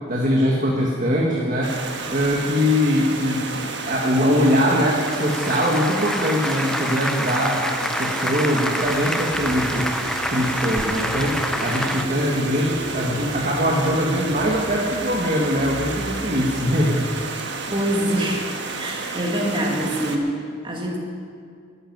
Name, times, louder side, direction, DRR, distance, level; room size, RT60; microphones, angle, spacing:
voice 1, 0.0-1.8 2.1-9.9 10.3-17.1, equal, 40° right, -2 dB, 1.7 m, -22 dB
Stream, 1.6-20.2, right 4 dB, 55° right, 1.5 m, -31 dB
Applause, 4.6-12.0, left 1 dB, 5° left, 0.5 m, -27 dB
Car / Engine starting, 8.7-17.4, equal, 20° left, 2.2 m, -39 dB
voice 2, 17.7-21.0, right 1 dB, 25° right, -1 dB, 2.1 m, -25 dB
13.0 x 10.0 x 9.5 m, 2.2 s
head